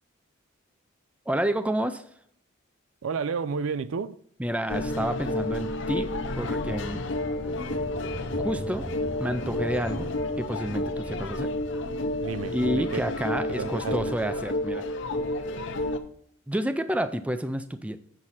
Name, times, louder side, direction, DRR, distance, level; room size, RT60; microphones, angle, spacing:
voice 1, 1.3-2.0 4.4-6.1 6.4-7.0 8.4-8.9 9.2-10.1 10.4-11.5 12.5-14.8 16.5-18.0, right 1 dB, 5° right, 0.4 m, -29 dB
voice 2, 3.0-4.2 12.2-13.0 13.4-13.9, right 5 dB, 80° right, 0.4 m, -31 dB
sound 1, 4.7-16.0, left 1 dB, 60° left, 0.7 m, -30 dB
sound 2, 5.6-15.3, right 1 dB, 25° right, 1.2 m, -43 dB
8.1 x 6.0 x 4.2 m
head